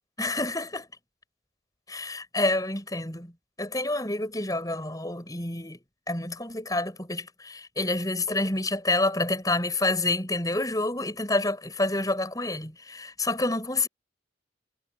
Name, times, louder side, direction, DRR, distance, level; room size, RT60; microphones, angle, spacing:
voice 1, 0.2-0.9 1.9-3.3 3.6-5.8 6.1-13.9, left 2 dB, 20° left, 7.8 m, -28 dB
head